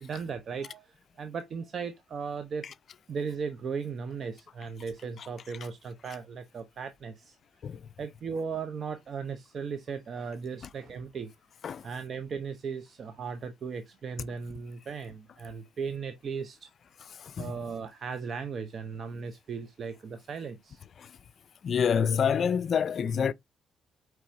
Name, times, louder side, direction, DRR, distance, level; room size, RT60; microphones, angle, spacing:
voice 1, 0.0-2.7 3.1-7.4 8.0-11.3 11.8-16.7 17.4-20.8, right 5 dB, 55° right, 0.5 m, -37 dB
voice 2, 17.2-17.5 21.0-21.1 21.6-23.3, left 7 dB, 55° left, 0.3 m, -27 dB
4.5 x 4.2 x 2.5 m
cardioid pair, 90°, 0 cm